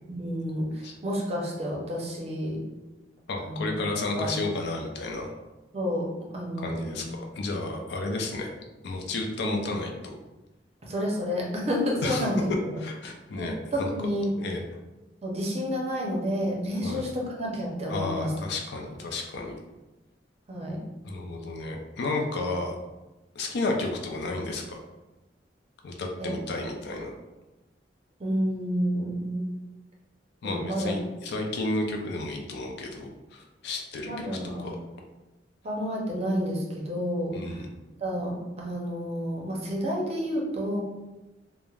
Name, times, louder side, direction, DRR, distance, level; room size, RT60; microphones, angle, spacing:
voice 1, 0.1-2.6 3.4-3.8 4.2-4.3 5.7-6.1 6.3-7.0 10.8-12.8 13.3-14.3 15.2-18.3 20.5-20.9 26.2-26.3 28.2-29.5 30.4-30.9 34.1-34.7 35.6-37.4 38.0-40.8, equal, 35° right, -2 dB, 0.6 m, -30 dB
voice 2, 3.3-5.4 6.6-8.5 8.8-10.2 12.0-12.3 12.8-13.9 14.4-14.6 16.8-17.0 17.9-19.6 21.0-22.8 23.3-24.8 25.8-27.2 30.4-34.8 37.3-37.7, left 2 dB, 65° left, 2 dB, 0.4 m, -32 dB
3.2 x 2.0 x 2.3 m, 1.1 s
head